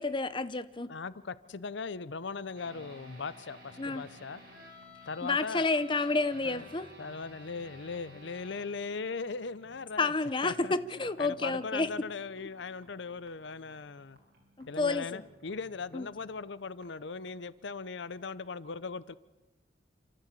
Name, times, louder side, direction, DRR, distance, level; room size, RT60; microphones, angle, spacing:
voice 1, 0.0-0.9 3.8-4.0 5.2-6.9 10.0-10.5 10.9-11.9 14.6-15.2 15.9-16.1, left 3 dB, 25° left, 0.8 m, -30 dB
voice 2, 0.9-4.4 5.1-5.7 6.4-6.6 7.0-10.1 10.4-10.7 11.2-14.2 14.7-19.1, left 4 dB, 65° left, 0.6 m, -39 dB
sound 1, 2.5-16.8 17.3-17.4, left 1 dB, 50° right, 7.1 m, -55 dB
28.0 x 13.5 x 8.3 m
head